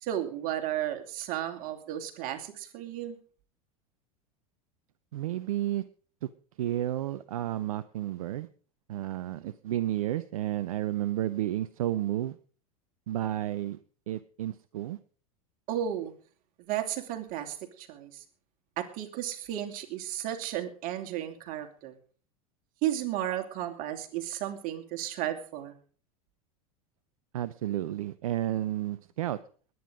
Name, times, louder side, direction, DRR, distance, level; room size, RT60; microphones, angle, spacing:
voice 1, 0.0-3.2 9.4-9.5 15.7-16.1 16.6-18.2 18.8-22.0 22.8-25.7, right 11 dB, 50° right, 5 dB, 2.9 m, -34 dB
voice 2, 5.1-5.8 6.2-6.3 6.6-8.5 8.9-12.4 13.1-13.8 14.1-15.0 27.3-29.4, right 13 dB, 70° right, 15 dB, 0.7 m, -31 dB
20.5 x 9.5 x 5.0 m, 0.43 s
hypercardioid pair, 85°, 19 cm